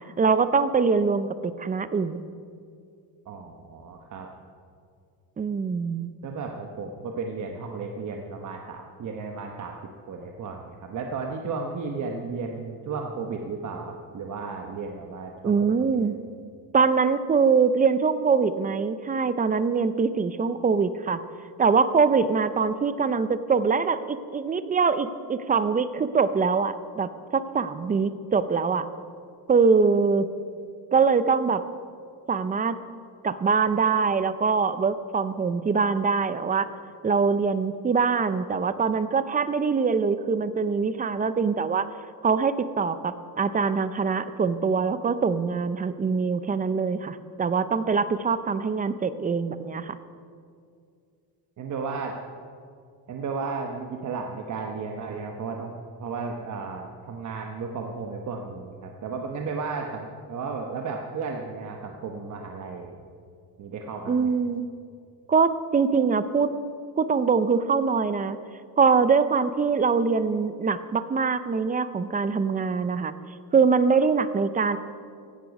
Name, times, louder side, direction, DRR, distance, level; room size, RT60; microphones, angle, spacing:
voice 1, 0.2-2.3 5.4-6.1 15.4-16.2 16.7-21.2 21.6-28.9 29.5-30.3 30.9-31.6 32.3-32.8 33.2-36.7 37.0-41.9 42.2-50.0 64.1-64.7 65.3-66.5 67.0-68.4 68.8-73.1 73.5-74.8, right 5 dB, 20° right, 13 dB, 0.5 m, -23 dB
voice 2, 3.3-4.3 6.2-9.8 10.1-15.6 15.8-16.2 51.6-52.2 53.1-55.7 56.0-63.0 63.6-64.3, right 4 dB, 45° right, 2 dB, 1.0 m, -34 dB
16.5 x 10.5 x 5.2 m, 2.3 s
cardioid pair, 150°, 41 cm